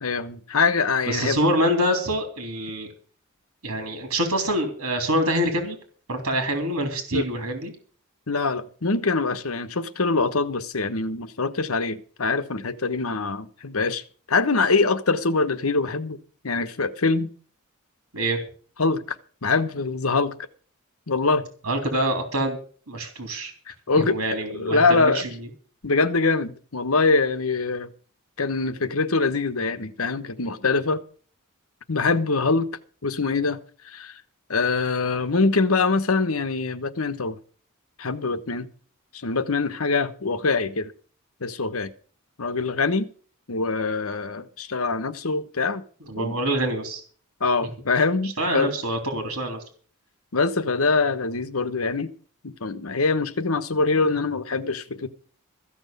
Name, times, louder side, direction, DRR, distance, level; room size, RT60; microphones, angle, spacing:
voice 1, 0.0-1.4 7.1-7.2 8.3-16.2 16.4-17.3 18.8-19.0 19.4-20.3 21.1-21.5 23.7-25.2 25.8-27.9 28.4-31.0 31.9-32.7 33.0-33.6 33.8-34.2 34.5-37.4 38.0-38.7 39.1-40.9 41.4-41.9 42.4-43.1 43.5-45.8 46.2-46.4 47.4-48.7 50.3-52.1 52.4-55.1, left 3 dB, 75° left, 1.2 m, -24 dB
voice 2, 1.1-2.9 3.6-5.8 6.1-7.7 18.1-18.4 21.6-22.6 22.9-23.5 24.0-25.2 46.1-47.0 48.4-49.6, right 1 dB, 80° right, 3.4 m, -25 dB
15.0 x 6.2 x 9.2 m
head